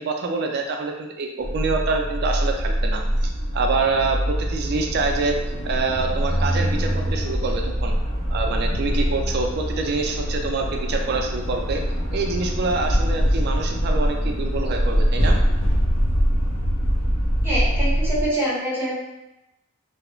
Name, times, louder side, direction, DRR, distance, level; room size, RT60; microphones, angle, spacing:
voice 1, 0.0-5.4 5.6-7.9 8.3-11.8 12.1-15.4, right 3 dB, 55° right, 3 dB, 0.3 m, -26 dB
sound 1, 1.4-18.3, equal, 85° left, 0.6 m, -23 dB
voice 2, 17.4-18.9, right 1 dB, 10° right, -8 dB, 0.7 m, -25 dB
2.3 x 2.0 x 2.9 m, 0.97 s
head